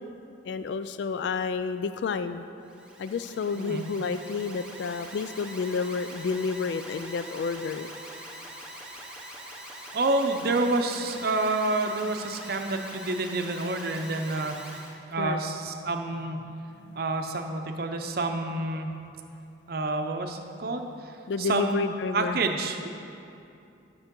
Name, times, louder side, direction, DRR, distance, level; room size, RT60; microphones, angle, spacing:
voice 1, 0.4-2.5 3.0-7.9 15.2-15.4 16.4-17.0 21.3-22.4, left 5 dB, 65° left, 11 dB, 0.3 m, -30 dB
Alarm, 2.6-15.0, right 1 dB, 5° right, 0.8 m, -43 dB
voice 2, 9.9-14.8 15.1-16.4 17.0-18.9 19.7-22.9, right 2 dB, 55° right, 5 dB, 0.6 m, -28 dB
12.5 x 6.2 x 3.7 m, 2.7 s
head